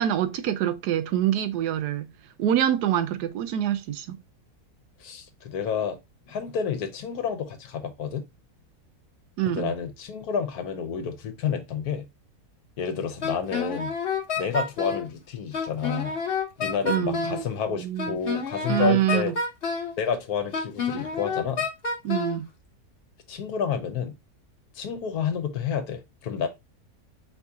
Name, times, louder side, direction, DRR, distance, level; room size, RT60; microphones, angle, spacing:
voice 1, 0.0-2.1 2.4-4.2 9.4-9.8 16.8-18.2 18.7-19.3 22.0-22.5, right 11 dB, 80° right, 1.2 m, -26 dB
voice 2, 5.0-6.0 6.3-8.2 9.5-12.1 12.8-13.9 14.4-16.2 16.6-19.3 20.0-21.7 23.3-24.1 24.7-26.5, left 7 dB, 70° left, 1.3 m, -30 dB
Wind instrument woodwind instrument, 13.2-15.1 15.5-17.5 18.0-20.0 20.5-22.4, left 4 dB, 40° left, 1.2 m, -29 dB
4.9 x 2.8 x 3.5 m
omnidirectional pair, 1.7 m